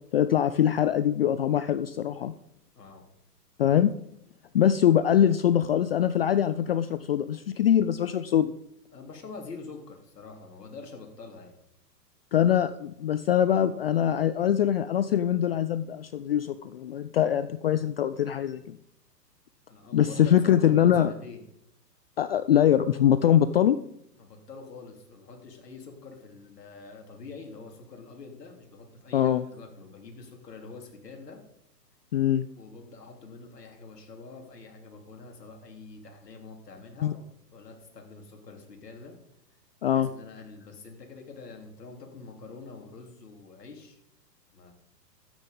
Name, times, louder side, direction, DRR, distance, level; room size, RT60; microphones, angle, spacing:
voice 1, 0.1-2.3 3.6-3.9 4.5-8.5 12.3-18.8 19.9-21.1 22.2-23.8 29.1-29.4 32.1-32.5 37.0-37.1 39.8-40.1, left 10 dB, 40° left, 13 dB, 0.4 m, -23 dB
voice 2, 8.9-11.6 19.7-21.4 24.2-31.4 32.6-39.1 39.9-44.0 44.5-44.7, left 4 dB, 70° left, 2 dB, 3.7 m, -45 dB
12.5 x 9.2 x 5.4 m, 0.77 s
hypercardioid pair, 120°, 49 cm